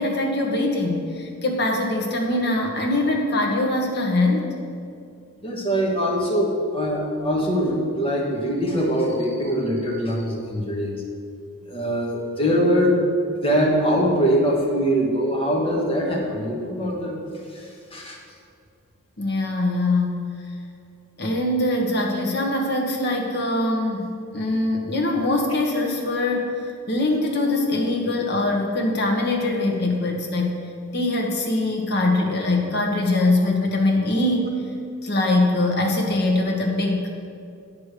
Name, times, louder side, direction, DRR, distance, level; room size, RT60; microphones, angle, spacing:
voice 1, 0.0-4.5 19.2-20.3 21.2-26.5 26.9-30.6 30.9-34.5 35.0-37.3, left 2 dB, 50° left, 1 dB, 1.2 m, -22 dB
voice 2, 5.4-11.0 11.6-13.0 13.4-17.2 17.5-18.2, equal, 25° left, -3 dB, 1.5 m, -23 dB
9.3 x 4.9 x 6.7 m, 2.4 s
head